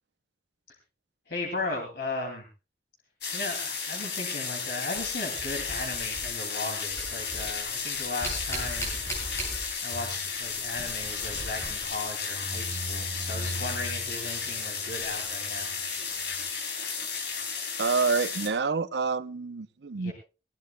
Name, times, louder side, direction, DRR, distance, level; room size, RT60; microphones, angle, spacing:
voice 1, 1.3-2.4 3.3-8.9 9.8-15.7 20.0-20.1, left 2 dB, 70° left, 2.6 m, -36 dB
sound 1, 3.2-18.5, left 5 dB, 90° left, 3.7 m, -33 dB
sound 2, 4.9-6.6 6.9-10.0 10.3-12.1 14.0-14.1 14.9-15.1, right 1 dB, 15° left, 7.5 m, -39 dB
sound 3, 9.9-16.5, right 1 dB, 30° right, 1.3 m, -41 dB
voice 2, 17.8-20.1, right 4 dB, 85° right, 0.6 m, -27 dB
19.5 x 17.5 x 2.2 m
head